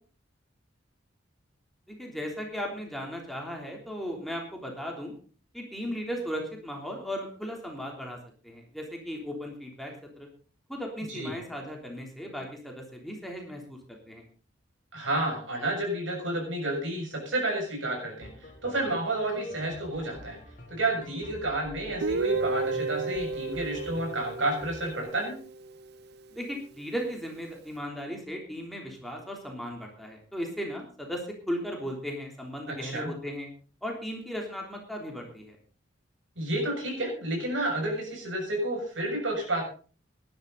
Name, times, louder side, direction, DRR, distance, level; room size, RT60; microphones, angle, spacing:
voice 1, 1.9-5.1 5.5-8.2 8.4-10.3 10.7-14.2 26.3-33.5 33.8-35.6, equal, ahead, 0 dB, 3.3 m, -36 dB
voice 2, 14.9-20.4 20.7-25.4 32.7-33.1 36.4-39.6, right 1 dB, 85° right, 1 dB, 6.9 m, -30 dB
sound 1, 18.2-25.0, equal, 45° left, 3.2 m, -47 dB
Guitar, 22.0-25.8, right 3 dB, 55° right, 0.6 m, -32 dB
17.5 x 12.0 x 4.0 m, 0.40 s
head